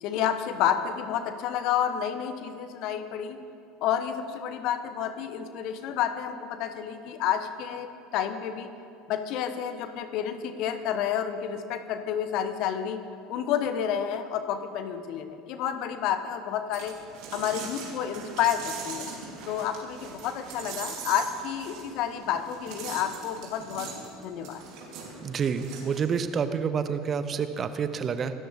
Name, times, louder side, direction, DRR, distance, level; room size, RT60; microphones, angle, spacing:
voice 1, 0.0-3.4 3.8-7.9 8.1-8.7 9.1-13.0 13.3-16.9 17.3-19.1 19.5-23.9 24.2-24.6, left 9 dB, 55° left, 9 dB, 1.2 m, -30 dB
sound 1, 16.7-26.4, right 5 dB, 55° right, 3.7 m, -41 dB
voice 2, 25.2-28.3, right 6 dB, 35° right, 10 dB, 1.0 m, -28 dB
26.5 x 13.0 x 3.8 m, 2.8 s
figure-of-eight pair, 70°, 0 cm